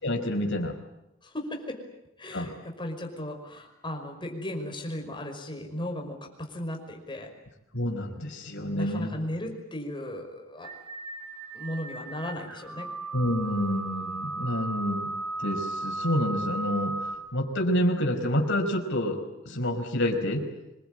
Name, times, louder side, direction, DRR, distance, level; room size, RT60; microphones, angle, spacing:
voice 1, 0.0-0.8 2.3-2.5 7.7-9.1 13.1-15.1 15.4-17.0 17.3-19.2 19.5-20.5, left 1 dB, 60° left, 4 dB, 5.1 m, -28 dB
voice 2, 1.2-1.8 2.2-7.3 8.6-10.7 11.5-12.9, left 1 dB, 25° left, 2 dB, 5.5 m, -36 dB
sound 1, 10.6-17.2, right 2 dB, 80° right, 3.4 m, -35 dB
26.0 x 22.5 x 9.0 m, 0.88 s
head